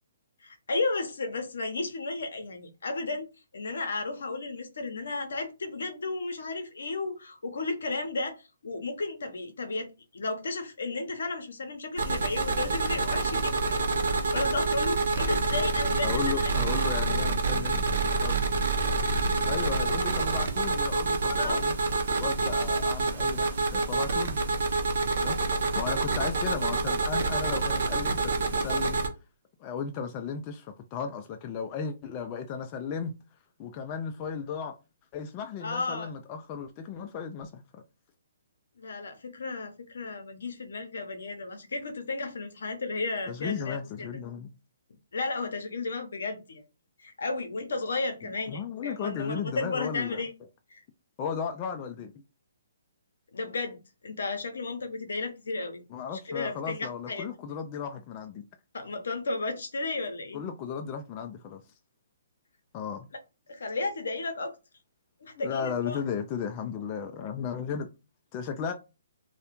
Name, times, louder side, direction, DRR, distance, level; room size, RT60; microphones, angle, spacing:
voice 1, 0.4-3.3 3.5-16.5 21.3-21.6 35.6-36.1 38.8-44.1 45.1-46.6 47.0-50.3 50.7-50.8 53.3-53.8 54.0-55.8 56.3-57.2 58.7-60.4 63.5-64.5 65.2-66.0, left 3 dB, 75° left, 0.6 m, -33 dB
sound 1, 12.0-29.1, right 3 dB, 60° right, 0.6 m, -27 dB
voice 2, 16.0-17.8 18.2-18.4 19.5-21.8 22.2-24.4 25.2-29.0 29.6-33.1 33.6-34.8 35.1-37.8 43.3-44.5 48.5-50.2 51.2-52.1 55.9-58.4 60.3-61.6 62.7-63.1 65.4-67.9 68.3-68.7, left 6 dB, 30° left, 0.3 m, -35 dB
2.3 x 2.1 x 2.9 m
hypercardioid pair, 140°, 0 cm